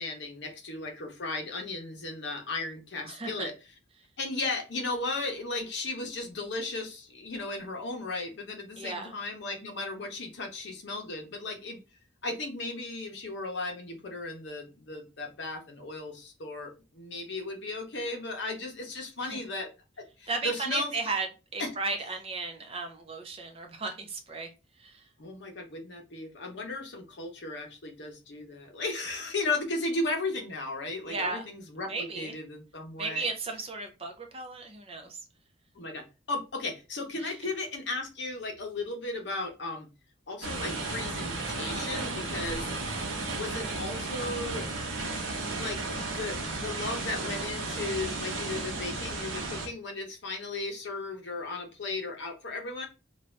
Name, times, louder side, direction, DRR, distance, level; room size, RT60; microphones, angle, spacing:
voice 1, 0.0-3.5 4.2-11.8 12.2-19.7 20.2-20.9 21.6-21.7 25.2-33.3 35.7-39.9 40.3-42.7 43.4-44.7 45.5-52.9, left 2 dB, 60° left, 0.8 m, -35 dB
voice 2, 3.0-3.5 8.8-9.1 19.2-19.4 20.3-21.3 21.5-24.5 24.8-25.1 31.0-31.5 31.9-32.3 33.0-35.2 37.2-37.3, right 3 dB, 30° right, 0.5 m, -35 dB
sound 1, 40.4-49.7, right 3 dB, 85° right, 0.8 m, -34 dB
2.6 x 2.3 x 3.2 m
head